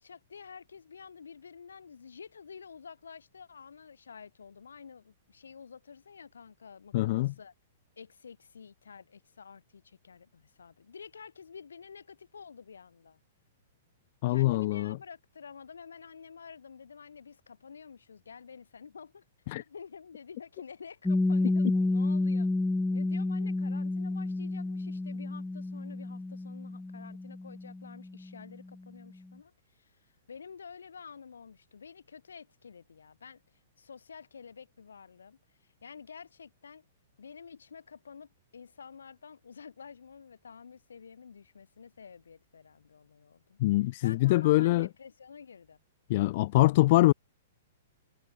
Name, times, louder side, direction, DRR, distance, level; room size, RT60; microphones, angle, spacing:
voice 1, 0.0-7.5 8.0-13.2 14.3-19.2 19.6-22.5 22.9-33.4 33.8-36.8 37.2-43.6 44.0-45.8, left 6 dB, 75° left, 5.8 m, -50 dB
voice 2, 6.9-7.3 14.2-15.0 19.5-19.6 43.6-44.9 46.1-47.1, left 18 dB, 50° left, 0.5 m, -24 dB
Piano, 21.1-28.3, left 2 dB, 5° left, 1.2 m, -30 dB
figure-of-eight pair, 110°, 0 cm